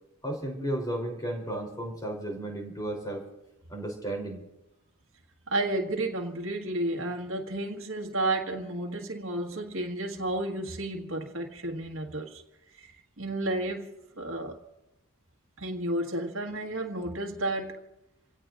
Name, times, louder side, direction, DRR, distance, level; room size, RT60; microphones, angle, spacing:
voice 1, 0.2-3.2 3.7-4.4, right 1 dB, 20° left, 3.4 m, -33 dB
voice 2, 5.5-12.4 12.8-12.9 13.2-13.9 14.2-14.6 15.6-17.8, right 1 dB, 65° right, 1.7 m, -32 dB
28.5 x 16.5 x 2.5 m
head